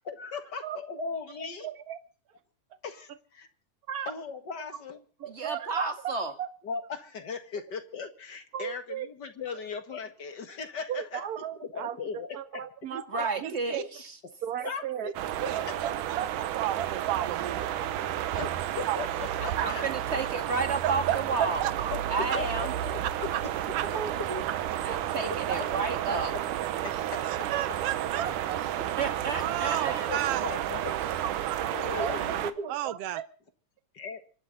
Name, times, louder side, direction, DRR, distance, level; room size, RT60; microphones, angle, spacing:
voice 1, 0.1-1.7 2.8-3.5 4.1-5.0 6.6-11.2 11.6-12.6 14.6-15.1 18.3-19.8 21.9-23.5 26.8-27.5 30.1-30.9 31.7-32.5 33.9-34.2, left 5 dB, 40° left, 1.9 m, -38 dB
voice 2, 0.6-1.1 1.6-2.0 3.9-4.1 5.2-6.5 8.5-9.1 10.9-13.6 14.4-15.1 15.4-16.3 16.7-17.1 23.9-24.4 24.9-25.1 25.5-25.6 26.1-26.3 28.2-28.6 29.9-30.0 31.0-31.3 32.0-33.2, right 9 dB, 45° right, 1.2 m, -36 dB
voice 3, 5.3-6.3 13.1-14.1 19.6-21.7 22.1-22.7 24.8-26.3 28.8-30.1, right 4 dB, 25° right, 1.7 m, -31 dB
voice 4, 13.2-13.8 15.0-15.1 15.4-17.6 18.9-19.0 19.6-19.7 20.8-21.2 21.6-21.7 23.3-23.4 23.7-23.8 27.2-28.2 29.4-30.5 32.7-33.2, right 12 dB, 70° right, 1.5 m, -32 dB
sound 1, 15.1-32.5, right 11 dB, 85° right, 2.5 m, -32 dB
26.0 x 11.5 x 4.1 m
omnidirectional pair, 3.5 m